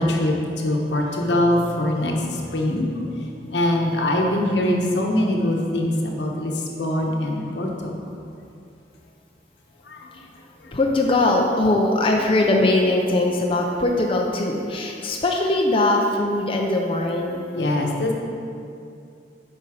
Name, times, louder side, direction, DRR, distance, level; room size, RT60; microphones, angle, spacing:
voice 1, 0.0-2.1 2.5-2.9 3.5-7.9 9.9-10.0 17.6-18.1, left 1 dB, 75° left, 0 dB, 1.1 m, -22 dB
voice 2, 10.7-17.4, left 2 dB, 30° left, 0 dB, 0.6 m, -21 dB
8.5 x 5.4 x 5.0 m, 2.5 s
head